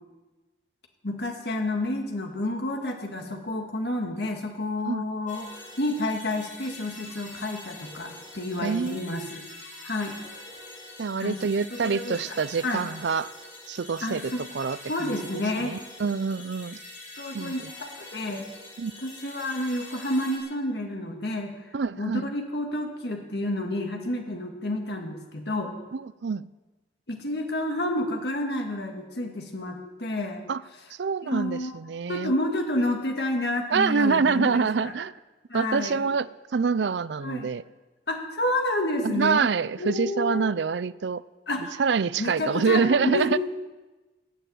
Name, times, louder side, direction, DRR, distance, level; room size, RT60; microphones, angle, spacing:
voice 1, 1.0-9.4 9.8-10.2 11.2-11.4 11.7-12.4 12.6-12.9 14.0-14.4 14.9-15.8 17.2-18.5 19.0-25.7 27.1-30.4 31.2-31.8 32.1-34.9 35.5-36.1 37.2-37.5 38.1-39.5 39.8-40.5 41.5-41.7 42.2-43.3, left 1 dB, 65° left, 3 dB, 1.9 m, -30 dB
sound 1, 5.3-20.4, left 2 dB, 45° left, 4.2 m, -44 dB
voice 2, 8.6-9.1 11.0-13.3 13.7-14.8 15.0-16.8 17.3-17.7 18.8-18.9 21.7-22.3 25.9-26.5 30.5-30.6 31.0-32.3 33.7-35.1 35.5-37.6 39.0-41.2 41.8-43.4, right 5 dB, 75° right, 18 dB, 0.5 m, -26 dB
16.0 x 9.3 x 8.9 m, 1.2 s
head